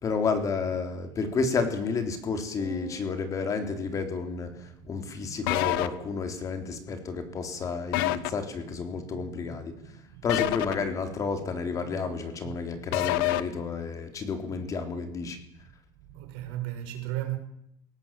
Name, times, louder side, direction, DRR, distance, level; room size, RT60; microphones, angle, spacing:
voice 1, 0.0-15.4, left 4 dB, 30° left, 3.7 m, -31 dB
sound 1, 2.6-5.0, right 1 dB, 45° left, 6.4 m, -48 dB
sound 2, 5.5-5.9 7.9-8.3 10.3-10.7 12.9-13.4, left 16 dB, 85° left, 1.4 m, -26 dB
voice 2, 9.1-10.7 12.4-12.9 16.0-17.4, right 14 dB, 75° right, 5.3 m, -38 dB
22.0 x 17.5 x 7.7 m
cardioid pair, 140°, 11 cm